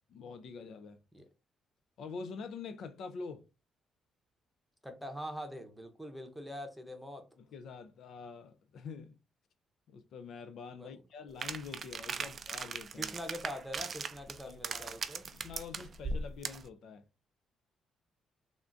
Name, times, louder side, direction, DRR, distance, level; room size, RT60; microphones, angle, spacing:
voice 1, 0.1-1.0 2.0-3.4 7.4-9.2 9.9-13.1 14.5-14.9 15.3-17.0, left 5 dB, 70° left, 0.4 m, -46 dB
voice 2, 4.8-7.3 10.7-11.0 12.2-12.3 13.0-15.3, equal, ahead, 0.8 m, -44 dB
sound 1, 11.4-16.7, right 4 dB, 45° right, 0.3 m, -39 dB
3.5 x 2.4 x 2.5 m
cardioid pair, 90°, 0 cm